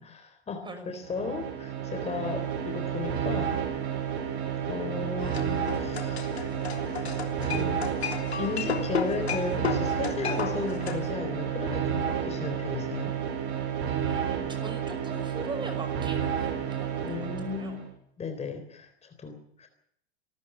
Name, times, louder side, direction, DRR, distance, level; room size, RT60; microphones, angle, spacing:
voice 1, 0.0-3.6 4.6-6.2 7.4-7.9 8.4-13.2 17.0-17.8 18.2-19.7, left 4 dB, 20° left, 6 dB, 3.9 m, -35 dB
sound 1, 1.0-17.9, right 8 dB, 55° right, 6.7 m, -31 dB
sound 2, 5.2-11.1, left 7 dB, 80° left, 3.4 m, -34 dB
voice 2, 14.0-17.1 17.6-17.8, right 2 dB, 15° right, 8 dB, 5.8 m, -40 dB
27.0 x 13.5 x 7.3 m, 0.72 s
hypercardioid pair, 100°, 32 cm